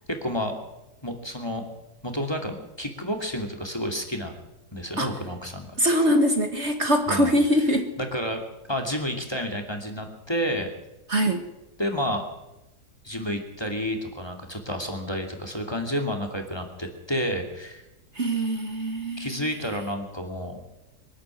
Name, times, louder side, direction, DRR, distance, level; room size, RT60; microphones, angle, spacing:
voice 1, 0.1-0.5 1.0-1.6 2.0-4.4 4.7-5.8 7.1-7.4 8.0-8.4 8.7-10.7 11.8-12.2 13.0-17.8 19.2-20.6, equal, 15° left, 4 dB, 2.6 m, -30 dB
voice 2, 5.8-7.9 11.1-11.4 18.1-19.4, equal, 45° right, 6 dB, 2.0 m, -23 dB
24.0 x 12.5 x 9.1 m, 0.95 s
omnidirectional pair, 1.7 m